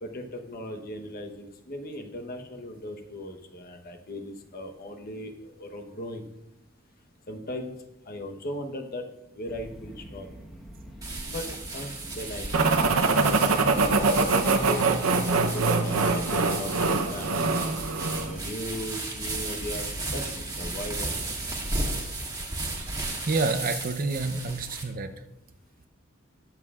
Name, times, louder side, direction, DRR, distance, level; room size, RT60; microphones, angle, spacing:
voice 1, 0.0-6.3 7.3-7.7 8.1-9.1 9.3-10.3 11.3-11.4 11.7-14.8 15.3-17.4 18.3-21.1, left 1 dB, 45° left, 4 dB, 1.1 m, -38 dB
sound 1, 9.5-21.7, equal, ahead, 1.3 m, -43 dB
sound 2, 11.0-24.8, right 2 dB, 20° right, 1.8 m, -35 dB
sound 3, 12.5-18.3, right 3 dB, 85° right, 0.8 m, -23 dB
voice 2, 23.3-25.1, right 3 dB, 45° right, 8 dB, 0.7 m, -28 dB
20.0 x 7.4 x 2.5 m, 0.91 s
head